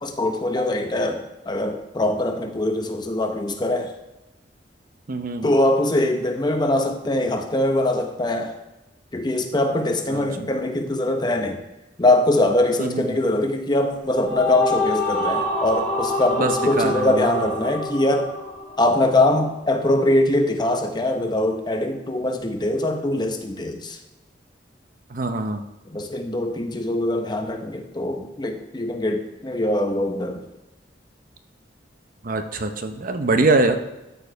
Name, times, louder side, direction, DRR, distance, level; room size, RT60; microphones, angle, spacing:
voice 1, 0.0-3.9 5.4-8.6 9.1-11.6 12.0-18.3 18.8-24.0 25.9-30.4, left 1 dB, 25° left, 5 dB, 0.9 m, -22 dB
voice 2, 5.1-5.5 10.1-10.2 12.8-13.2 16.4-17.3 25.1-25.6 32.2-33.8, right 2 dB, 50° right, 7 dB, 0.7 m, -23 dB
sound 1, 14.0-19.4, left 2 dB, 5° left, 1.6 m, -26 dB
13.0 x 4.8 x 4.6 m, 0.97 s
head